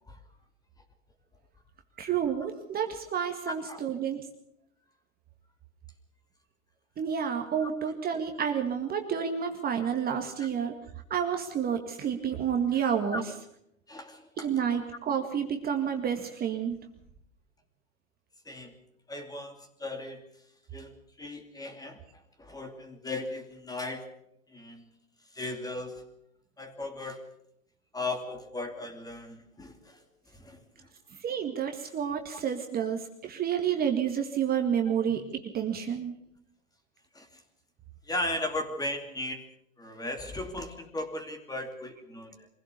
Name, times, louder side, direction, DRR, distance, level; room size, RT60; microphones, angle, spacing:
voice 1, 2.0-4.2 7.0-10.7 11.1-13.3 14.4-16.8 31.2-36.1, right 8 dB, 20° right, 4 dB, 1.9 m, -30 dB
voice 2, 3.4-3.8 7.6-7.7 10.4-10.5 13.1-13.2 13.9-14.5 18.5-18.7 19.1-20.2 20.7-22.0 22.4-24.0 24.5-24.9 25.3-26.0 26.6-27.2 27.9-30.0 30.3-30.6 34.9-35.0 37.1-37.3 38.1-39.4 39.8-42.5, left 2 dB, 10° left, 6 dB, 2.7 m, -37 dB
24.0 x 16.0 x 6.8 m, 0.76 s
hypercardioid pair, 120°, 40 cm